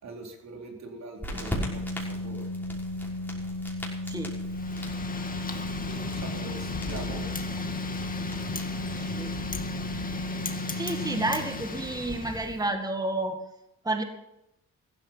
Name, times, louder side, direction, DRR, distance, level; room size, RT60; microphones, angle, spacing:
voice 1, 0.0-2.8 5.9-7.3, right 2 dB, 65° right, 2 dB, 4.0 m, -43 dB
sound 1, 1.2-9.4, equal, 5° left, 5.9 m, -40 dB
Organ, 1.3-11.9, left 1 dB, 45° left, 3.5 m, -35 dB
Wind, 4.5-12.6, left 4 dB, 30° left, 2.1 m, -36 dB
voice 2, 8.9-9.3 10.7-13.4 13.8-14.0, right 2 dB, 10° right, 5 dB, 2.0 m, -30 dB
15.0 x 13.5 x 5.8 m, 0.85 s
cardioid pair, 90°, 30 cm